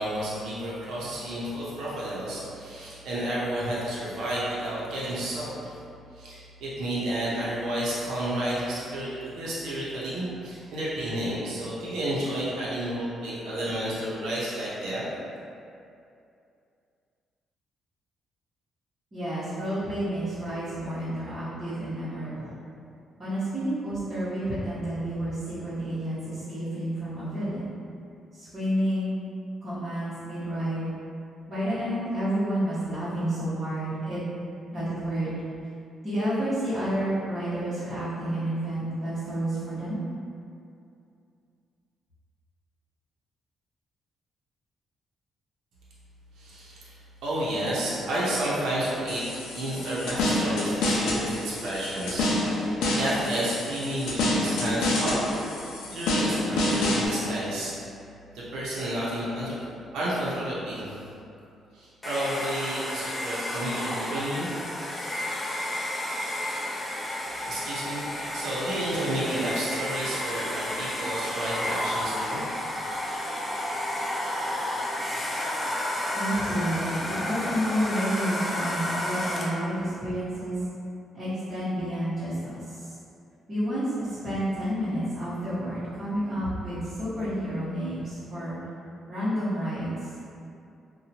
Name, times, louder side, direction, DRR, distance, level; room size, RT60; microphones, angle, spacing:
voice 1, 0.0-5.8 6.2-15.0 46.4-46.9 47.2-49.2 49.5-55.2 55.5-57.7 58.3-59.5 59.9-61.0 61.7-64.5 67.4-72.5, right 1 dB, 80° right, -8 dB, 0.7 m, -31 dB
voice 2, 19.1-22.5 23.2-27.7 28.3-29.1 29.6-30.9 31.5-34.2 34.7-35.3 36.0-40.0 76.1-80.6 81.1-83.0 83.5-88.6 89.1-90.2, equal, 30° right, -16 dB, 1.0 m, -30 dB
sound 1, 49.1-57.1, left 1 dB, 85° left, 0.4 m, -27 dB
Domestic sounds home sounds, 62.0-79.7, left 1 dB, 20° left, 0.4 m, -31 dB
2.7 x 2.2 x 2.9 m, 2.5 s
cardioid pair, 90°, 0 cm